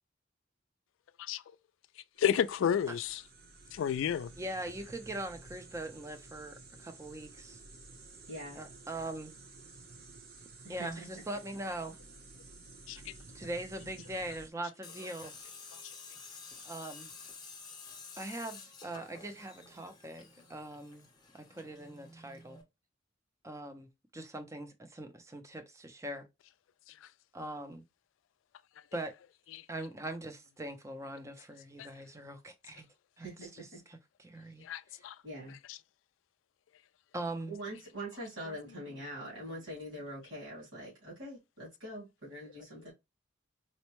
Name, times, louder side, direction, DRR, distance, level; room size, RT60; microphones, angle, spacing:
voice 1, 2.2-3.2 3.7-4.3 12.9-13.1 15.7-15.8 29.5-29.6 31.8-31.9 34.6-35.2 35.7-35.8, left 8 dB, 85° left, 0.3 m, -31 dB
sound 1, 2.2-14.5, right 3 dB, 55° right, 0.8 m, -53 dB
voice 2, 4.4-7.6 8.6-9.3 10.7-11.9 13.3-15.5 16.6-17.1 18.2-21.1 21.3-22.6 23.4-26.3 27.3-27.8 28.9-29.1 29.7-32.9 33.2-33.3 33.6-34.6 34.9-35.0 37.1-37.5, right 1 dB, 15° right, 0.5 m, -41 dB
voice 3, 8.3-8.6 10.6-11.2 33.2-33.8 35.2-35.6 37.5-42.9, right 1 dB, 85° right, 2.3 m, -44 dB
Tools, 14.8-22.6, left 4 dB, 20° left, 0.8 m, -51 dB
4.2 x 2.1 x 2.9 m
head